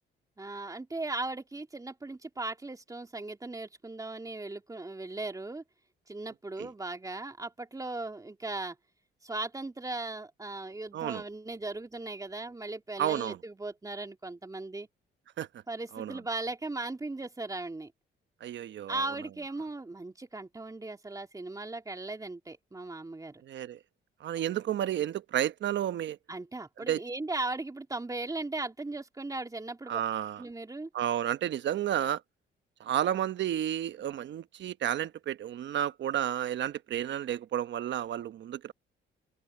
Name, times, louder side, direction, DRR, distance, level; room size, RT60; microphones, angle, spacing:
voice 1, 0.4-5.6 6.1-8.8 9.2-14.9 15.7-17.9 18.9-23.4 26.3-30.0 30.4-30.9, right 2 dB, 15° right, 3.0 m, -37 dB
voice 2, 10.9-11.2 13.0-13.4 15.4-15.5 15.9-16.2 18.4-19.0 23.4-23.8 24.2-26.2 26.9-27.0 29.9-30.4 30.9-32.2 32.8-38.7, right 11 dB, 65° right, 1.0 m, -31 dB
cardioid pair, 90°, 20 cm